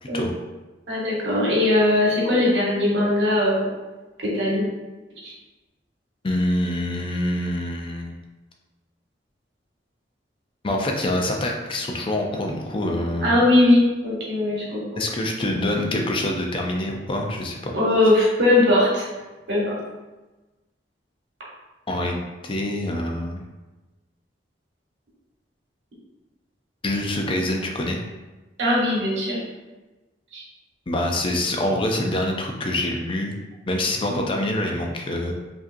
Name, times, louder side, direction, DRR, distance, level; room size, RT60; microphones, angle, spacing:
voice 1, 0.0-0.3 6.2-8.2 10.6-13.4 15.0-17.7 21.9-22.2 22.4-23.4 26.8-28.0 30.9-33.3 33.7-35.3, left 1 dB, 30° left, 1 dB, 0.5 m, -25 dB
voice 2, 0.9-3.7 4.2-4.6 5.2-5.3 13.2-15.0 17.7-19.0 19.5-19.8 28.6-29.4 30.3-30.4 34.1-34.2, left 1 dB, 85° right, -5 dB, 1.3 m, -20 dB
5.0 x 2.7 x 2.6 m, 1.1 s
head